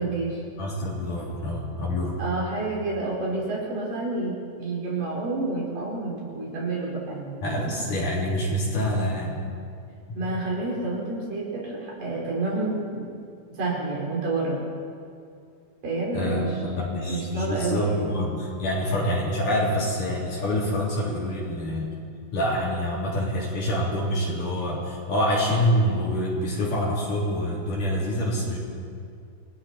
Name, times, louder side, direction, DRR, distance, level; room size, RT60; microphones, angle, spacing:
voice 1, 0.0-0.4 2.2-7.7 10.1-13.0 13.6-14.6 15.8-16.5 16.7-18.1, right 3 dB, 70° right, -5 dB, 6.6 m, -29 dB
voice 2, 0.6-2.2 7.4-9.4 10.1-10.2 16.1-21.9 22.3-28.6, equal, 60° left, -5 dB, 4.9 m, -26 dB
28.5 x 20.5 x 4.4 m, 2.4 s
omnidirectional pair, 4.1 m